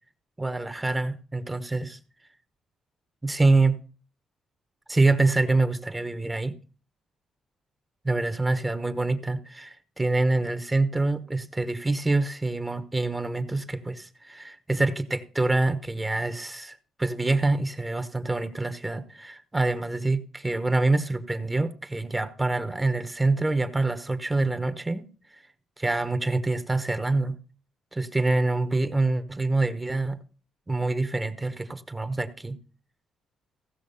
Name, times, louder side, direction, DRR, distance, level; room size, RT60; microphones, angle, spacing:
voice 1, 0.4-2.0 3.2-3.8 4.9-6.5 8.0-25.1 25.8-27.4 27.9-30.2 30.7-32.6, right 2 dB, 15° right, 1.1 m, -26 dB
15.5 x 6.1 x 5.5 m
cardioid pair, 90°, 0 cm